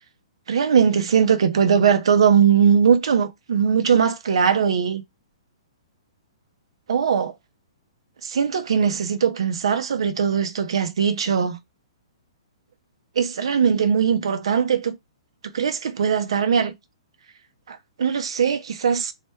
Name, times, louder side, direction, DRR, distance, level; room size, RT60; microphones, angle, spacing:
voice 1, 0.5-5.0 6.9-7.3 8.2-11.6 13.2-15.0 15.4-16.7 17.7-19.1, right 7 dB, 65° right, 0.5 m, -20 dB
3.0 x 2.1 x 3.4 m
figure-of-eight pair, 120°, 3 cm